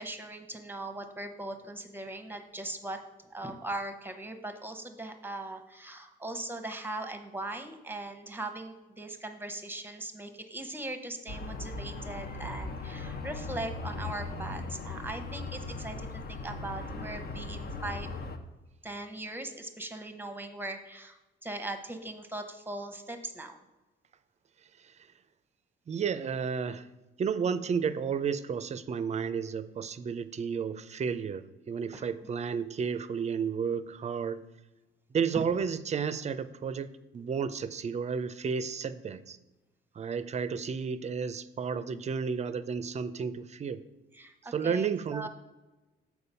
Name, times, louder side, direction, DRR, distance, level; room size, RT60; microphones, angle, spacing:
voice 1, 0.0-3.0 3.3-18.1 18.8-23.6 31.9-32.3 35.3-35.4 44.1-45.3, right 2 dB, 10° right, 6 dB, 0.9 m, -40 dB
sound 1, 11.3-18.4, left 3 dB, 50° left, 0.8 m, -38 dB
voice 2, 25.9-26.9 27.2-34.4 35.1-39.4 39.9-43.8 44.5-45.3, right 6 dB, 35° right, 14 dB, 0.5 m, -32 dB
6.8 x 4.7 x 5.5 m, 1.1 s
cardioid pair, 90°, 20 cm